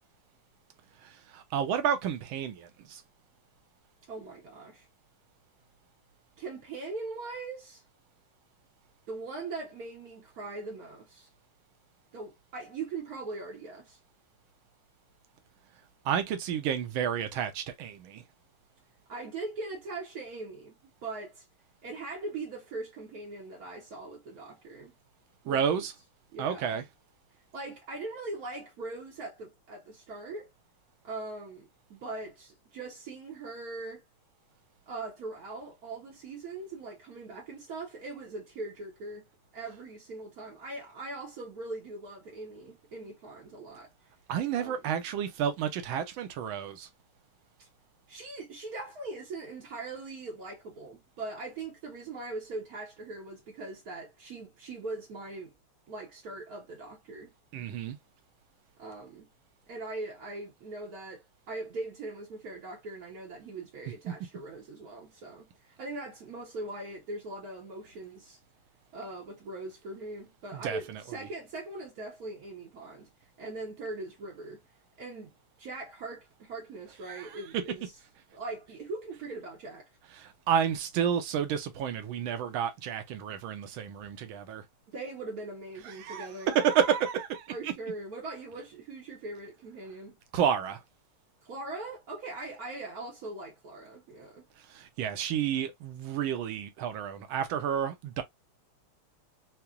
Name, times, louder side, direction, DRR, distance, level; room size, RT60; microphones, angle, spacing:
voice 1, 1.0-3.0 16.0-18.2 25.5-25.9 26.4-26.8 44.3-46.9 57.5-58.0 64.1-64.2 70.5-71.0 77.1-77.6 80.2-84.6 85.8-87.7 90.3-90.8 94.7-98.2, right 8 dB, 75° right, 1.5 m, -30 dB
voice 2, 4.1-4.9 6.4-7.8 9.1-11.3 12.1-14.0 19.1-21.4 21.8-24.9 25.4-25.8 26.3-26.8 27.5-30.5 31.0-34.0 34.9-39.3 39.5-43.9 44.5-44.9 47.6-47.7 48.1-55.5 55.9-57.3 58.8-59.3 59.7-68.4 68.9-73.1 73.4-74.6 75.0-77.8 78.3-79.9 84.9-86.6 87.5-90.2 91.4-94.5, right 3 dB, 60° right, 1.0 m, -41 dB
5.8 x 2.1 x 2.2 m
omnidirectional pair, 2.4 m